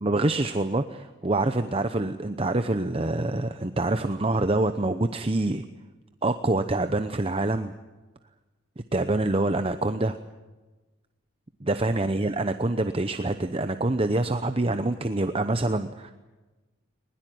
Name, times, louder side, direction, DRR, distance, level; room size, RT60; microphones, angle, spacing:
voice 1, 0.0-5.6 6.2-7.7 8.9-10.2 11.6-16.1, right 2 dB, 30° right, 9 dB, 0.8 m, -26 dB
21.0 x 21.0 x 9.4 m, 1.2 s
head